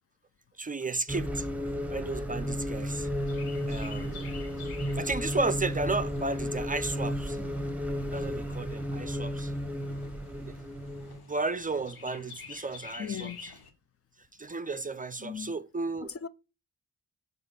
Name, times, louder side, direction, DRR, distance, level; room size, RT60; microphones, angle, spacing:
voice 1, 0.6-1.5 1.9-3.1 3.7-4.3 5.0-7.4 8.1-9.5 10.4-10.5 11.2-13.5 14.4-16.1, right 3 dB, 25° right, 0.4 m, -33 dB
sound 1, 1.1-11.2, equal, 5° right, 0.9 m, -33 dB
Chirp tweet, 2.9-13.7, left 5 dB, 85° left, 1.2 m, -50 dB
voice 2, 13.0-13.4 15.2-15.6 16.0-16.3, left 8 dB, 40° left, 0.4 m, -37 dB
5.0 x 4.0 x 5.5 m
cardioid pair, 75°, 36 cm